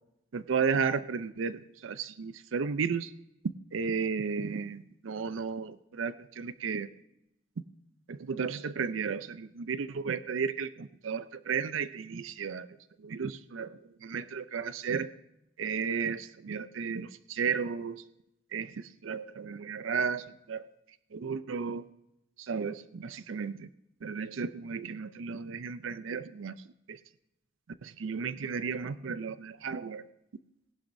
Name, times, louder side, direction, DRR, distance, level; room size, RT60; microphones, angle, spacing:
voice 1, 0.3-3.1 3.7-6.9 8.1-12.7 13.0-15.1 15.6-18.0 18.5-20.7 21.1-21.8 22.4-23.7 24.0-26.5 26.9-27.0 27.8-30.0, right 6 dB, 85° right, 14 dB, 0.5 m, -34 dB
19.0 x 11.5 x 2.6 m, 0.85 s
head